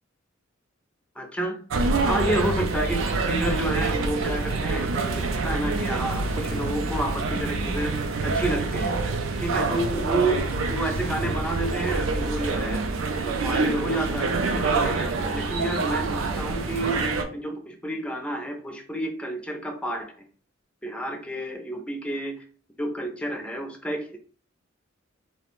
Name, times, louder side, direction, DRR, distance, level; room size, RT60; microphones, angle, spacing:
voice 1, 1.2-1.6 1.9-8.0 8.2-8.9 9.4-10.4 10.7-12.8 13.2-17.0 17.3-20.1 20.8-22.4 22.8-24.2, right 1 dB, 5° left, 3 dB, 0.4 m, -30 dB
sound 1, 1.7-17.2, right 3 dB, 80° right, 0.4 m, -26 dB
2.3 x 2.0 x 3.0 m, 0.42 s
head